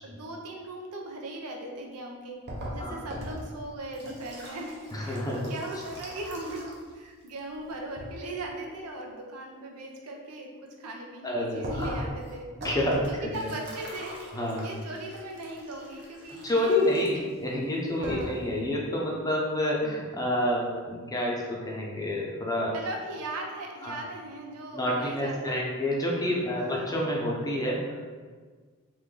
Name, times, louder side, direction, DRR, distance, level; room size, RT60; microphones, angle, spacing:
voice 1, 0.0-2.4 2.7-10.5 10.8-12.5 13.1-14.2 14.6-17.4 17.9-18.4 22.7-25.7 26.5-27.1, right 1 dB, 85° right, 1 dB, 0.6 m, -39 dB
sound 1, 2.5-6.9 7.2-8.1 11.6-17.3 17.8-17.9 18.0-18.5, equal, 50° right, 0.7 m, -40 dB
voice 2, 4.9-5.5 11.2-11.9 12.6-13.5 14.3-14.6 16.4-22.7 23.8-23.9 24.7-28.1, left 1 dB, 15° left, -3 dB, 0.6 m, -28 dB
3.3 x 2.6 x 3.7 m, 1.5 s
head